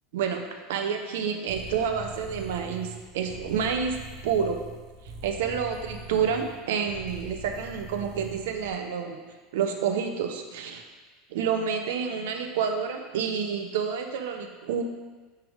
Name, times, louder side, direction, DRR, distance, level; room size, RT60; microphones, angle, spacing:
voice 1, 0.7-4.0 4.2-4.6 5.2-9.2 9.5-10.8 11.3-14.8, right 7 dB, 90° right, 5 dB, 0.7 m, -29 dB
sound 1, 1.5-8.7, right 2 dB, 45° right, 0.8 m, -43 dB
9.6 x 3.4 x 3.6 m, 1.4 s
supercardioid pair, 180°, 0 cm